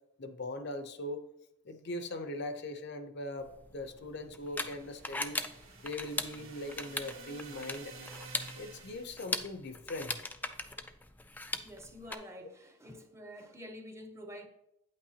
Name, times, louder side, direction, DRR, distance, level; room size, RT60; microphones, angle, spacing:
voice 1, 0.2-1.3 1.6-5.4 5.8-7.9 8.5-10.1, left 1 dB, 50° left, 0.7 m, -40 dB
sound 1, 3.4-12.1, left 2 dB, 10° left, 0.4 m, -40 dB
sound 2, 4.4-9.3, right 3 dB, 70° right, 1.9 m, -51 dB
voice 2, 11.6-14.5, equal, 15° right, 0.7 m, -48 dB
9.1 x 8.4 x 2.8 m
head